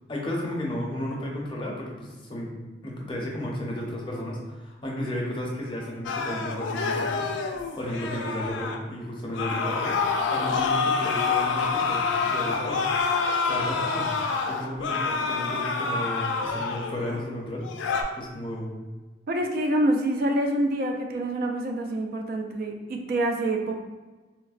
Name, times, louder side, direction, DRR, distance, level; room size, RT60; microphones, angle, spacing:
voice 1, 0.1-2.6 2.8-10.0 10.3-12.9 13.4-17.7 18.1-18.7, left 1 dB, 30° left, -2 dB, 0.6 m, -33 dB
sound 1, 6.0-8.8 9.3-17.2 17.6-18.0, left 4 dB, 90° left, 0.3 m, -27 dB
voice 2, 19.3-23.8, right 1 dB, 55° right, 3 dB, 0.3 m, -26 dB
4.0 x 2.0 x 2.4 m, 1.2 s
head